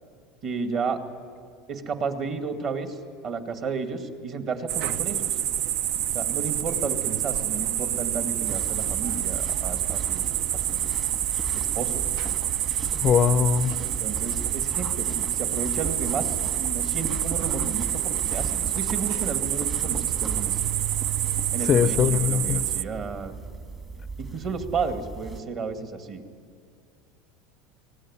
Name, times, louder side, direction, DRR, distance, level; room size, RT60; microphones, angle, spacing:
voice 1, 0.4-1.0 1.7-5.4 6.1-10.9 11.5-12.0 13.8-20.7 21.5-23.3 24.2-26.2, right 5 dB, 40° right, 6 dB, 2.2 m, -32 dB
sound 1, 4.7-22.8, right 12 dB, 55° right, 0.5 m, -27 dB
sound 2, 8.4-25.4, right 3 dB, 20° right, 1.5 m, -37 dB
voice 2, 12.9-13.7 21.7-22.6, left 7 dB, 30° left, 14 dB, 0.5 m, -21 dB
23.5 x 18.5 x 9.8 m, 2.2 s
supercardioid pair, 155°, 0 cm